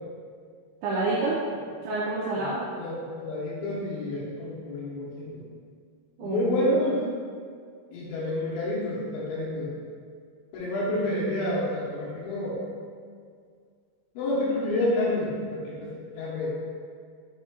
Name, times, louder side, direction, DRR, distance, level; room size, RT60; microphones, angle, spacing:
voice 1, 0.8-1.4 1.8-2.6 6.2-6.7, right 2 dB, 85° right, -6 dB, 2.6 m, -28 dB
voice 2, 2.8-5.4 6.2-7.0 7.9-9.7 10.5-12.6 14.1-16.5, left 1 dB, 75° left, -6 dB, 3.2 m, -29 dB
6.7 x 6.1 x 2.3 m, 2.1 s
omnidirectional pair, 5.7 m